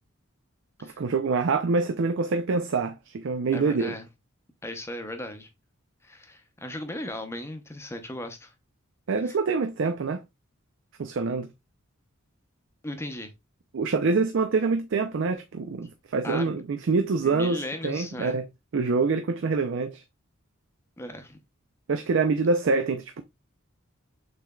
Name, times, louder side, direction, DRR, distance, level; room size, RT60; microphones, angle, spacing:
voice 1, 0.8-3.9 9.1-10.2 11.0-11.5 13.7-18.5 18.7-20.0 21.9-23.2, right 4 dB, 60° right, 0.4 m, -25 dB
voice 2, 3.5-4.1 4.6-5.5 6.0-8.5 9.2-9.4 12.8-13.3 16.2-16.5 17.2-18.4 21.0-21.4, left 1 dB, 15° left, 0.7 m, -37 dB
6.7 x 3.1 x 2.3 m
head